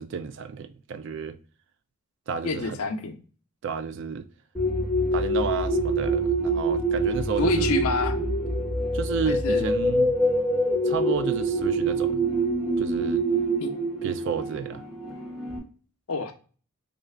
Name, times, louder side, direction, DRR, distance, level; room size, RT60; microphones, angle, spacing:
voice 1, 0.0-1.4 2.3-2.8 3.6-4.3 5.1-7.8 8.9-10.1 10.8-12.3 12.8-13.2 14.0-14.8, right 6 dB, 55° right, 0.3 m, -31 dB
voice 2, 2.4-3.2 7.4-8.2 9.3-9.7 13.6-13.7 16.1-16.3, left 4 dB, 80° left, 0.6 m, -27 dB
sound 1, 4.5-15.6, right 1 dB, ahead, 1.0 m, -25 dB
3.7 x 2.4 x 3.2 m
head